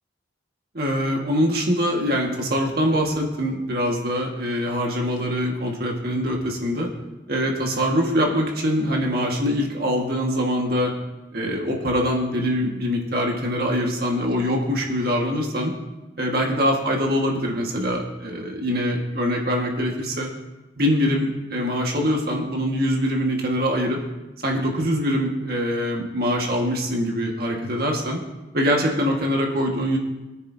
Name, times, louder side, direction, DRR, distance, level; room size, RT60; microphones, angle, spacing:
voice 1, 0.7-6.9 7.3-10.9 11.3-15.7 16.2-20.3 20.8-24.0 24.4-28.2 28.5-30.0, equal, 50° right, 0 dB, 1.8 m, -23 dB
20.0 x 9.4 x 2.8 m, 1.1 s
head